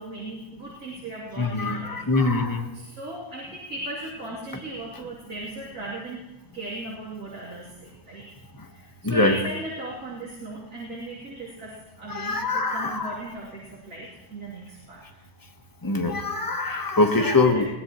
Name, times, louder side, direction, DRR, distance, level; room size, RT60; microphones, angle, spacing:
voice 1, 0.0-2.1 2.7-6.3 6.5-8.3 8.7-15.2 17.2-17.7, right 2 dB, 60° right, -7 dB, 3.4 m, -37 dB
voice 2, 1.4-2.7 8.6-8.7 9.0-9.4 12.1-13.2 15.8-17.7, left 3 dB, 15° left, 4 dB, 1.1 m, -23 dB
21.5 x 16.5 x 3.1 m, 1.0 s
omnidirectional pair, 1.7 m